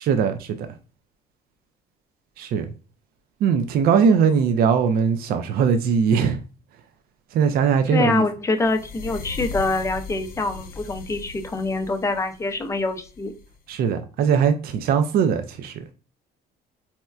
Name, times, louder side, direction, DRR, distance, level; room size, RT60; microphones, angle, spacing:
voice 1, 0.1-0.6 2.4-2.7 3.4-6.4 7.3-8.2 13.7-15.7, right 6 dB, 65° right, 0.4 m, -20 dB
voice 2, 7.9-13.3, left 3 dB, 15° left, 0.5 m, -25 dB
sound 1, 8.6-13.6, left 3 dB, 60° left, 0.7 m, -38 dB
4.2 x 2.1 x 2.3 m
cardioid pair, 110°, 17 cm